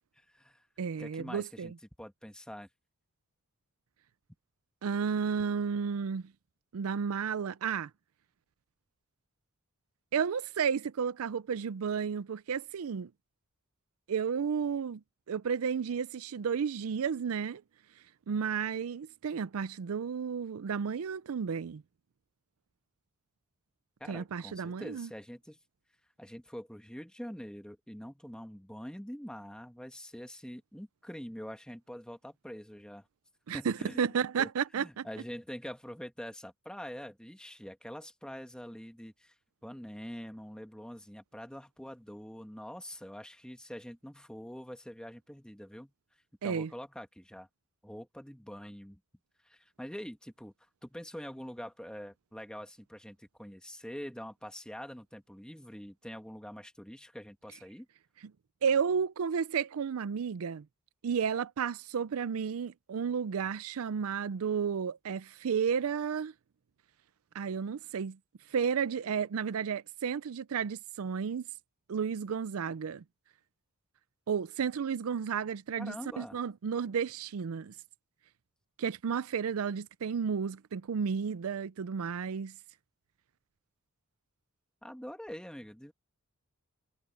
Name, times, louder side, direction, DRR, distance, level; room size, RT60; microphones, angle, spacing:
voice 1, 0.2-0.7 1.0-1.7 2.0-2.7 24.0-25.6 26.2-33.1 33.5-34.5 34.7-39.3 39.6-45.9 46.4-47.5 47.8-49.0 49.4-50.5 50.8-57.9 75.8-76.4 84.8-85.9, equal, 5° left, 1.6 m, -45 dB
voice 2, 0.8-1.7 4.8-6.3 6.7-7.9 10.1-13.1 14.1-15.0 15.3-17.6 18.3-21.8 24.1-25.1 33.5-35.1 46.4-46.7 58.6-60.7 61.0-66.3 67.3-68.2 68.5-71.5 71.9-73.0 74.3-77.7 78.8-82.6, right 6 dB, 70° right, 0.4 m, -32 dB
head